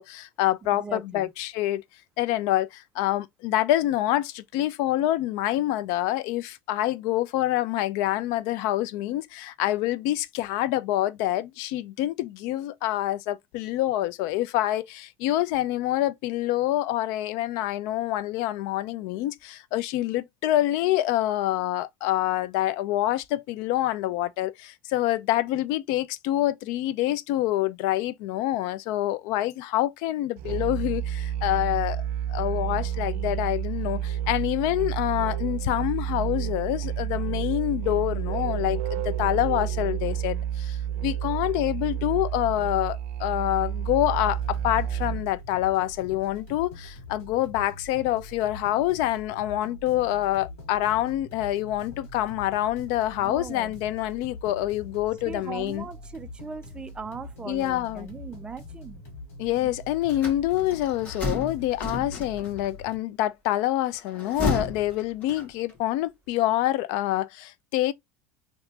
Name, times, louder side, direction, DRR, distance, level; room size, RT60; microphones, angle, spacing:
voice 1, 0.0-1.8 2.2-32.0 32.3-55.9 57.5-58.1 59.4-67.9, left 14 dB, 60° left, 0.4 m, -26 dB
voice 2, 0.6-1.3 53.2-53.8 55.2-59.0 59.6-59.7, right 5 dB, 15° right, 0.3 m, -39 dB
Musical instrument, 30.4-45.4, right 10 dB, 80° right, 0.5 m, -30 dB
sound 1, 44.3-63.0, left 2 dB, 85° left, 1.8 m, -43 dB
sound 2, 60.1-62.7 64.0-65.8, left 3 dB, 20° left, 1.5 m, -32 dB
3.2 x 2.9 x 2.7 m
supercardioid pair, 145°, 7 cm